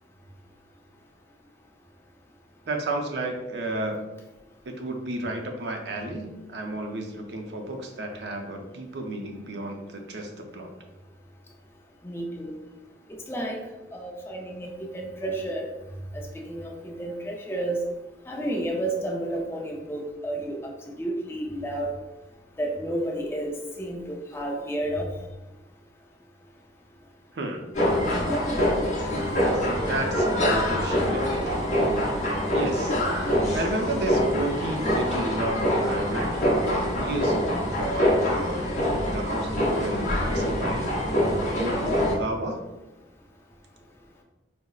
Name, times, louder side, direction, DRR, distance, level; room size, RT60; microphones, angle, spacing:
voice 1, 2.7-4.0 4.6-10.8 27.3-27.6 29.5-31.9 32.5-38.7 39.1-42.6, right 1 dB, 65° right, 3 dB, 0.5 m, -32 dB
voice 2, 12.0-12.5 13.3-13.6 13.9-15.7 16.1-17.9 18.3-22.0 22.6-25.1 29.0-29.1, right 1 dB, 15° left, 0 dB, 0.4 m, -31 dB
sound 1, 27.7-42.2, equal, 40° left, 0.7 m, -25 dB
4.9 x 2.0 x 2.3 m, 1.1 s
head